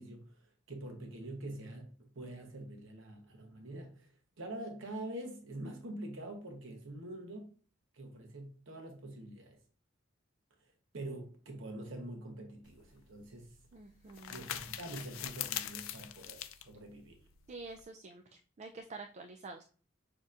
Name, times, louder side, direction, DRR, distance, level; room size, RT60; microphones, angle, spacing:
voice 1, 0.0-4.1 4.4-7.5 7.9-9.6 10.9-13.5 14.3-17.2, right 1 dB, 70° right, 0.9 m, -45 dB
sound 1, 12.6-17.8, left 11 dB, 85° left, 0.4 m, -43 dB
voice 2, 13.7-14.4 17.5-18.2 18.6-19.6, right 3 dB, 35° right, 0.4 m, -47 dB
6.6 x 2.8 x 2.4 m
head